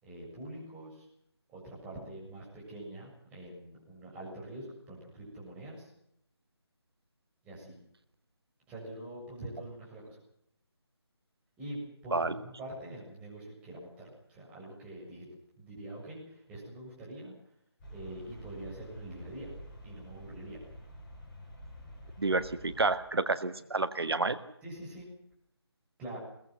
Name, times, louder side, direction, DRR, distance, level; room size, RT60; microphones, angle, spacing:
voice 1, 0.0-1.0 1.5-5.9 7.4-7.8 8.7-10.2 11.6-15.3 15.6-17.3 17.9-19.5 19.8-20.6 24.6-25.1 26.0-26.2, right 1 dB, 10° right, -5 dB, 7.3 m, -44 dB
sound 1, 17.8-22.9, equal, 20° left, 6.6 m, -48 dB
voice 2, 22.2-24.4, right 3 dB, 65° right, 12 dB, 1.6 m, -29 dB
22.0 x 18.5 x 7.8 m, 0.75 s
figure-of-eight pair, 155°, 14 cm